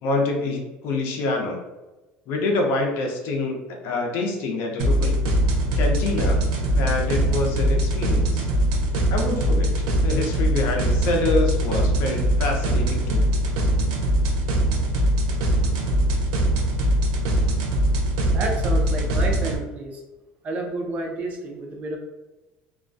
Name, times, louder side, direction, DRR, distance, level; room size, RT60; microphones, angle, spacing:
voice 1, 0.0-1.6 2.3-3.6 3.8-5.2 5.8-6.4 6.7-8.5 9.1-9.7 10.0-13.3, left 3 dB, 65° left, 2 dB, 0.6 m, -26 dB
sound 1, 4.8-19.6, right 1 dB, 85° right, 0.5 m, -22 dB
voice 2, 18.3-20.0 20.4-22.0, right 2 dB, 35° right, 1 dB, 0.5 m, -30 dB
2.3 x 2.2 x 2.5 m, 1.1 s
cardioid pair, 130°, 4 cm